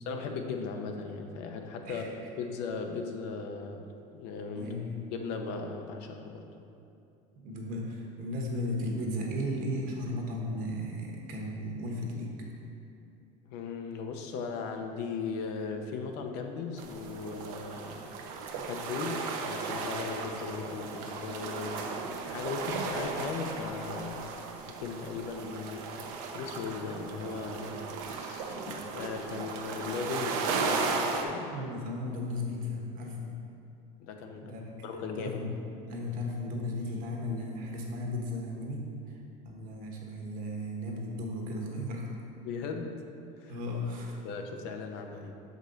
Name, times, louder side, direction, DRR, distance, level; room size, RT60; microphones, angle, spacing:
voice 1, 0.1-4.7 5.1-6.5 13.5-24.2 24.8-25.9 26.3-31.5 34.0-34.6 34.8-35.4 42.4-43.0 43.4-43.5 44.2-45.3, left 5 dB, 70° left, 4 dB, 0.7 m, -37 dB
voice 2, 4.5-5.0 7.4-12.5 20.9-21.0 31.5-33.3 34.4-35.5 35.9-42.1 43.5-44.2, left 1 dB, 50° right, 0 dB, 1.3 m, -35 dB
sound 1, 16.8-31.2, right 4 dB, 80° right, 0.7 m, -36 dB
6.4 x 5.3 x 3.9 m, 2.7 s
supercardioid pair, 120°, 17 cm